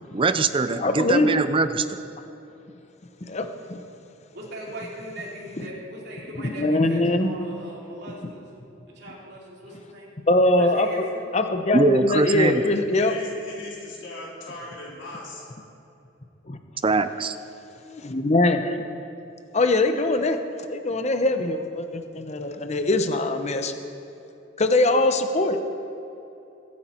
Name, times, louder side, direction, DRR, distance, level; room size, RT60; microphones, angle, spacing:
voice 1, 0.1-2.0 11.7-12.6 16.8-17.4, right 3 dB, 25° right, 11 dB, 0.5 m, -22 dB
voice 2, 0.8-1.3 3.3-3.8 5.6-5.7 6.4-7.3 10.3-10.9 11.3-13.1 16.5-16.6 17.9-18.8 19.5-23.7 24.6-25.6, left 2 dB, 35° left, 7 dB, 0.8 m, -22 dB
voice 3, 4.3-8.5 8.9-10.1 10.6-11.2, right 1 dB, 60° right, -4 dB, 3.1 m, -39 dB
voice 4, 12.2-12.7 12.9-15.4, left 1 dB, 75° left, -5 dB, 4.0 m, -39 dB
23.5 x 8.7 x 4.5 m, 2.9 s
head